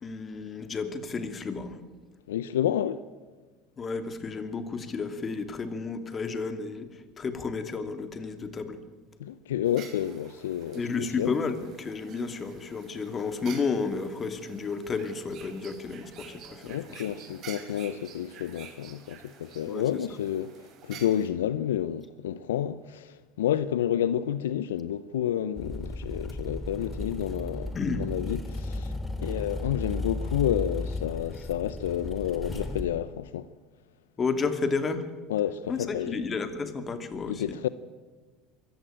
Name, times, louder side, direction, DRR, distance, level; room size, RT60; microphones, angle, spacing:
voice 1, 0.0-1.8 3.8-8.8 10.7-17.0 19.7-19.9 27.7-28.1 34.2-35.1 35.7-37.6, left 4 dB, 30° left, 2.6 m, -32 dB
voice 2, 2.3-3.0 9.2-11.3 16.6-20.6 20.8-33.5 35.3-36.2 37.3-37.7, left 10 dB, 80° left, 0.6 m, -30 dB
sound 1, 9.6-21.3, right 8 dB, 50° right, 4.0 m, -49 dB
sound 2, 25.6-32.8, left 2 dB, 15° left, 2.9 m, -35 dB
23.5 x 15.0 x 9.0 m
hypercardioid pair, 75°, 0 cm